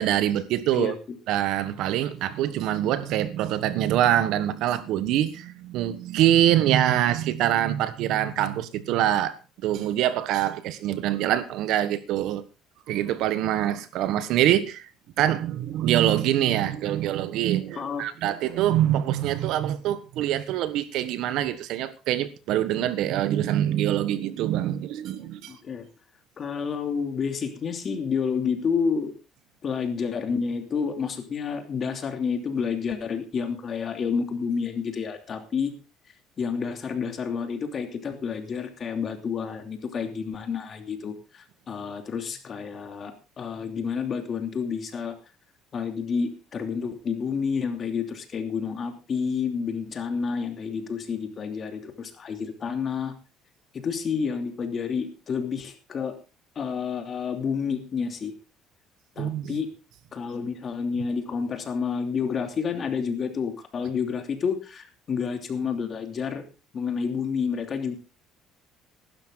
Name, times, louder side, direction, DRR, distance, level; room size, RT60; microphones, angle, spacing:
voice 1, 0.0-0.9 1.3-9.4 9.6-12.4 12.9-14.9 15.2-25.6 59.2-59.6, right 12 dB, 75° right, 1.3 m, -24 dB
voice 2, 0.7-1.2 17.8-18.0 25.5-25.9 26.4-29.1 29.6-35.7 36.4-45.1 45.7-53.1 53.7-56.2 56.5-58.3 59.2-59.7 60.1-66.4 66.7-68.0, left 6 dB, 40° left, 2.9 m, -29 dB
15.5 x 12.0 x 3.9 m
cardioid pair, 115°, 0 cm